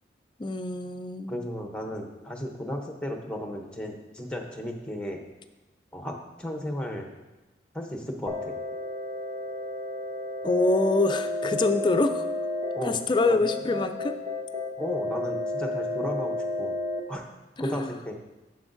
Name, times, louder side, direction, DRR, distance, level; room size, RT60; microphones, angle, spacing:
voice 1, 0.4-1.3 10.4-12.3 12.8-14.1 17.6-17.9, left 2 dB, 25° left, 9 dB, 0.3 m, -25 dB
voice 2, 1.3-5.2 5.9-7.1 7.7-8.5 12.7-13.0 13.3-13.4 14.8-16.7 17.1-17.3 17.6-18.2, left 1 dB, 5° left, 3 dB, 0.7 m, -34 dB
sound 1, 8.3-17.0, left 2 dB, 35° right, 0.8 m, -32 dB
9.8 x 7.0 x 2.6 m, 1.1 s
head